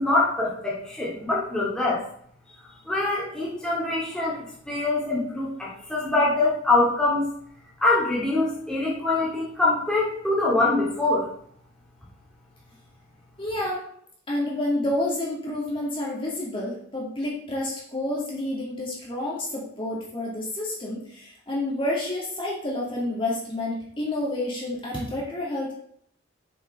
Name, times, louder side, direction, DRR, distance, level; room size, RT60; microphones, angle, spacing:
voice 1, 0.0-2.0 2.9-4.4 4.7-7.3 7.8-11.3, left 2 dB, 5° left, -7 dB, 2.2 m, -24 dB
voice 2, 13.4-13.8 14.3-25.7, left 1 dB, 25° left, -4 dB, 2.2 m, -29 dB
7.2 x 5.7 x 5.4 m, 0.66 s
head